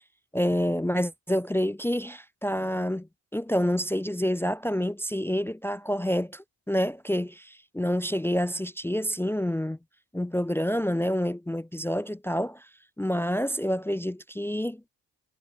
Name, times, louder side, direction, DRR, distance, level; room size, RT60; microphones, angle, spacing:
voice 1, 0.3-3.1 3.3-9.8 10.1-12.7 13.0-14.8, equal, 5° left, 0.5 m, -28 dB
supercardioid pair, 65°, 40 cm